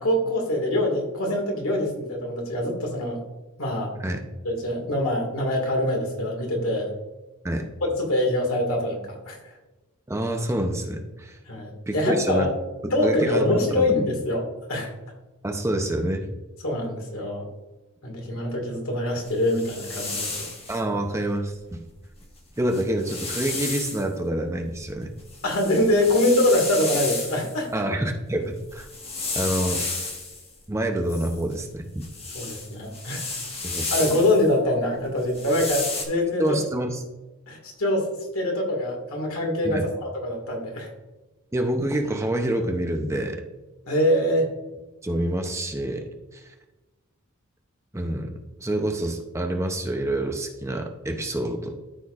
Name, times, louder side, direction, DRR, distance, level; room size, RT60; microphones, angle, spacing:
voice 1, 0.0-3.2 3.6-3.9 4.4-6.9 7.8-9.4 11.5-12.5 12.9-14.9 16.6-17.5 18.0-20.5 25.4-27.7 32.3-33.4 33.9-36.6 37.5-38.1 38.3-40.9 43.9-44.5, left 1 dB, 80° left, 1 dB, 2.0 m, -24 dB
voice 2, 10.1-11.4 11.9-12.5 12.8-14.0 15.4-16.3 20.7-21.8 22.6-25.2 27.7-28.9 29.3-29.9 30.7-32.1 33.6-34.1 36.4-37.0 39.6-39.9 41.5-43.4 45.0-46.5 47.9-48.3 48.6-51.8, right 1 dB, 15° right, 4 dB, 0.6 m, -27 dB
sound 1, 19.2-20.8 22.2-22.3 22.6-24.1 24.6-27.6 28.6-30.5 31.1-34.5 35.2-36.1, left 3 dB, 30° left, 1.4 m, -32 dB
13.5 x 4.5 x 2.5 m, 1.1 s
head